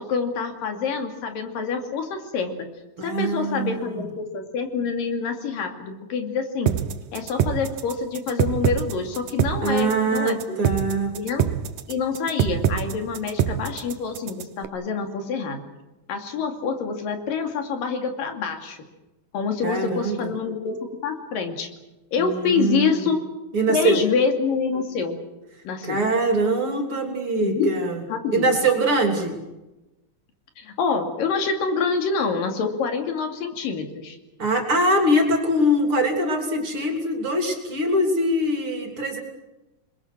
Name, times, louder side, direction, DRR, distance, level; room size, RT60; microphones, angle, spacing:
voice 1, 0.0-2.7 3.0-6.7 7.1-11.5 11.9-15.7 16.1-18.8 19.3-21.7 22.1-23.2 23.7-25.2 25.6-26.0 27.4-27.7 28.1-28.5 30.6-34.2, left 5 dB, 85° left, 5 dB, 4.2 m, -26 dB
voice 2, 3.0-4.1 9.6-11.1 19.6-20.3 22.2-23.1 23.5-24.0 25.8-28.0 28.3-29.4 34.4-39.2, right 1 dB, 40° right, 3 dB, 3.9 m, -23 dB
sound 1, 6.7-14.6, right 10 dB, 80° right, 2.7 m, -25 dB
29.0 x 21.5 x 6.3 m, 1.0 s
omnidirectional pair, 3.8 m